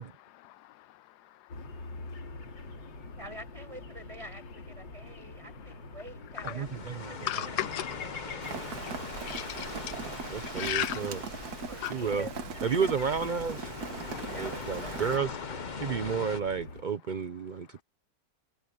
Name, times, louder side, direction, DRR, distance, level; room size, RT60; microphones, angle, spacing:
voice 1, 0.3-1.8 2.3-2.4 6.4-6.5 7.3-8.2 8.8-8.9 9.2-9.7 10.5-11.1 11.8-11.9 15.1-15.4, left 13 dB, 75° left, 1.1 m, -37 dB
sound 1, 1.5-16.8, left 3 dB, 90° left, 3.8 m, -45 dB
voice 2, 3.2-6.7 7.2-8.6 11.7-12.3 14.3-15.0 15.9-16.0, right 1 dB, 15° right, 6.6 m, -47 dB
sound 2, 6.3-16.4, left 5 dB, 35° left, 0.9 m, -42 dB
voice 3, 6.5-7.3 10.3-11.2 11.9-12.3 12.6-13.7 14.4-15.3 15.8-17.8, right 6 dB, 75° right, 0.4 m, -31 dB
Rain, 8.4-15.2, right 6 dB, 60° right, 1.7 m, -40 dB
omnidirectional pair, 1.9 m